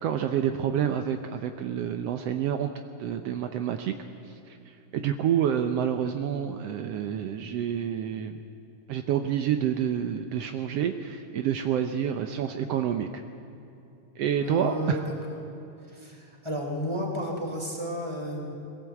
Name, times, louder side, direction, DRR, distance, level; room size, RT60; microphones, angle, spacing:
voice 1, 0.0-2.7 3.0-3.9 4.9-8.4 8.9-13.2 14.2-15.0, right 9 dB, 90° right, 7 dB, 1.3 m, -28 dB
voice 2, 14.4-15.1 15.9-18.5, equal, 10° right, 0 dB, 3.2 m, -33 dB
21.0 x 17.0 x 8.3 m, 2.9 s
omnidirectional pair, 3.9 m